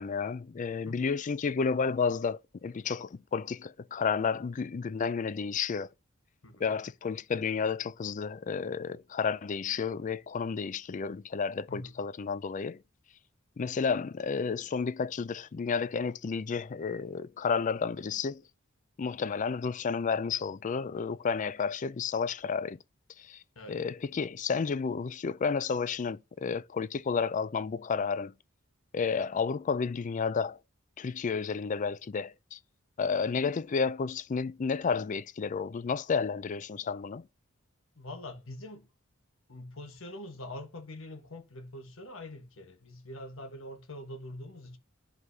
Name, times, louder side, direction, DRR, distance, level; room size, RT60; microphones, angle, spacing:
voice 1, 0.0-5.9 6.6-12.8 13.6-18.4 19.0-22.8 23.2-23.4 23.7-28.3 28.9-30.6 31.0-32.6 33.0-37.3, left 5 dB, 40° left, 0.4 m, -31 dB
voice 2, 6.4-6.8 11.7-12.0 23.5-23.8 38.0-38.9 39.5-44.8, left 1 dB, 70° left, 1.3 m, -44 dB
10.5 x 4.7 x 2.7 m
head